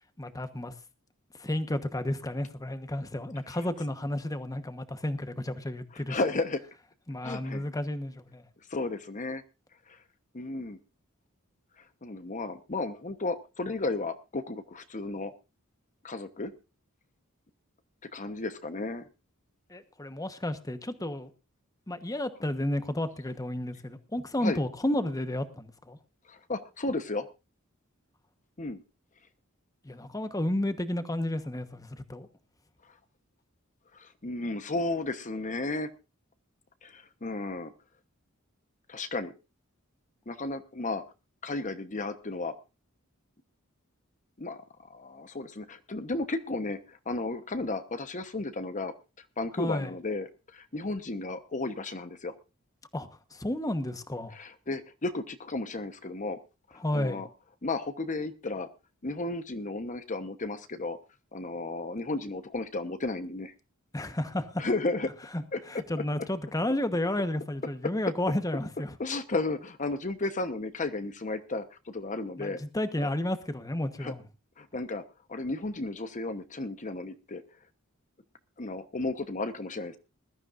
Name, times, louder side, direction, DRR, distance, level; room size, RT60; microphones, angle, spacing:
voice 1, 0.2-0.7 1.4-6.2 7.1-8.4 19.7-21.3 21.9-26.0 29.8-32.3 49.6-49.9 52.9-54.4 56.8-57.2 63.9-64.6 65.3-65.4 65.7-68.9 72.4-74.2, left 1 dB, 15° left, 10 dB, 1.1 m, -32 dB
voice 2, 6.1-6.6 7.2-7.7 8.7-9.4 9.9-10.0 10.3-10.8 12.0-15.3 16.0-16.5 18.1-19.1 24.4-24.6 26.3-27.3 28.6-28.8 33.9-35.9 36.8-37.7 38.9-39.3 40.3-41.0 41.4-42.5 44.4-44.6 44.9-48.9 49.4-50.3 50.5-52.3 54.3-56.4 56.7-57.3 57.6-58.7 59.0-61.0 61.3-63.5 64.6-65.1 65.5-65.8 69.0-72.6 73.0-73.1 74.0-74.1 74.6-75.0 75.3-77.4 78.6-80.0, left 2 dB, 35° left, 10 dB, 1.1 m, -33 dB
20.5 x 13.0 x 2.6 m, 0.29 s
head